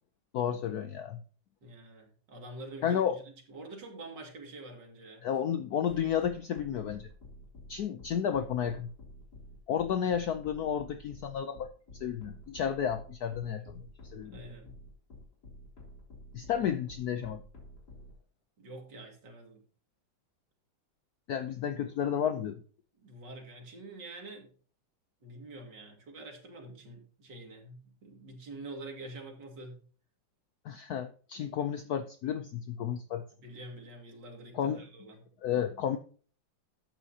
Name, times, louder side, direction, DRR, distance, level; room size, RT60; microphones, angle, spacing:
voice 1, 0.3-1.2 2.8-3.2 5.2-7.1 7.7-8.9 9.7-11.7 12.0-13.8 14.1-14.4 16.3-17.4 21.3-22.6 30.6-33.3 34.5-34.8 35.4-36.0, left 8 dB, 70° left, 9 dB, 0.9 m, -32 dB
voice 2, 1.6-5.3 14.2-14.7 16.6-16.7 18.6-19.6 23.0-24.5 25.2-29.8 33.4-35.3, right 2 dB, 55° right, 2 dB, 2.9 m, -46 dB
sound 1, 5.9-18.1, left 1 dB, 50° left, 3.5 m, -50 dB
12.0 x 9.1 x 2.8 m, 0.42 s
omnidirectional pair, 2.3 m